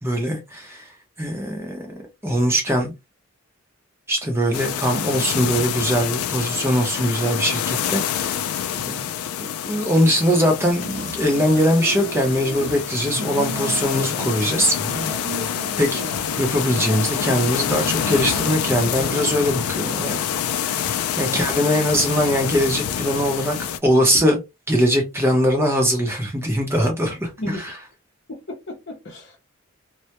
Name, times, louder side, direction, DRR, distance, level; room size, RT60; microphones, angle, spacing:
voice 1, 0.0-0.9 1.2-1.9 2.2-2.9 4.1-8.4 9.4-14.8 15.8-16.0 16.4-20.2 20.6-24.4 24.7-27.7, equal, 10° right, 0.6 m, -21 dB
sound 1, 4.5-23.8, left 9 dB, 85° left, 0.3 m, -27 dB
voice 2, 8.7-9.1 15.3-15.5 21.3-21.4 27.4-27.6 28.3-29.4, left 1 dB, 50° left, 0.7 m, -34 dB
sound 2, 10.7-12.7 13.0-14.5 14.8-16.5 16.8-20.0, right 2 dB, 60° right, 0.6 m, -35 dB
2.2 x 2.1 x 2.8 m
head